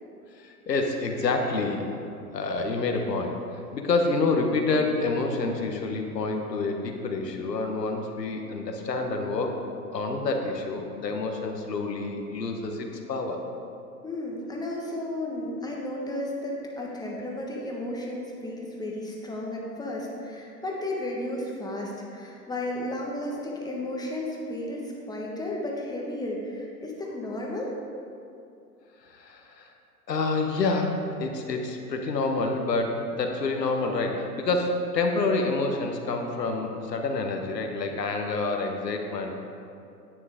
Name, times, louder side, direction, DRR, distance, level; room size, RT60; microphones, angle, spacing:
voice 1, 0.3-1.9 2.3-9.6 9.9-13.4 29.0-29.7 30.1-39.4, left 3 dB, 85° left, 3 dB, 1.3 m, -28 dB
voice 2, 14.0-27.7, left 1 dB, 10° left, -2 dB, 1.4 m, -33 dB
9.9 x 9.4 x 3.7 m, 2.6 s
hypercardioid pair, 105°, 48 cm